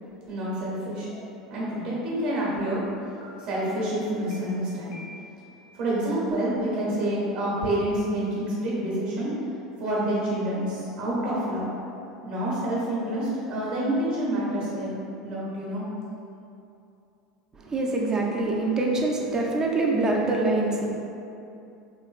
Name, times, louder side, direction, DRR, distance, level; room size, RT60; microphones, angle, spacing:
voice 1, 0.3-1.1 1.5-2.9 3.4-4.9 5.7-9.3 9.8-11.6 12.2-15.0 15.2-15.8, right 1 dB, 55° right, -6 dB, 1.1 m, -28 dB
sound 1, 1.1-1.2 1.6-2.0 2.7-2.8 3.2-3.7 4.3-4.4 4.9-5.5, left 1 dB, 40° left, 0.8 m, -47 dB
voice 2, 17.6-20.9, right 2 dB, 20° right, -1 dB, 0.5 m, -25 dB
3.0 x 3.0 x 2.5 m, 2.7 s
hypercardioid pair, 80°, 3 cm